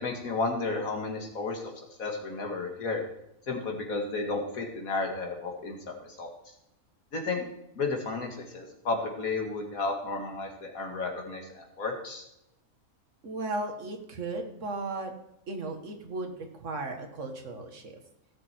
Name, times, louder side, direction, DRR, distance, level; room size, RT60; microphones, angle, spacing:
voice 1, 0.0-1.6 2.0-3.0 3.5-5.8 6.2-6.3 7.1-7.5 7.8-12.2, left 3 dB, 75° left, 2 dB, 2.5 m, -32 dB
voice 2, 13.2-15.1 15.5-18.0, right 2 dB, 60° right, 4 dB, 2.0 m, -36 dB
17.0 x 7.0 x 4.5 m, 0.83 s
omnidirectional pair, 1.5 m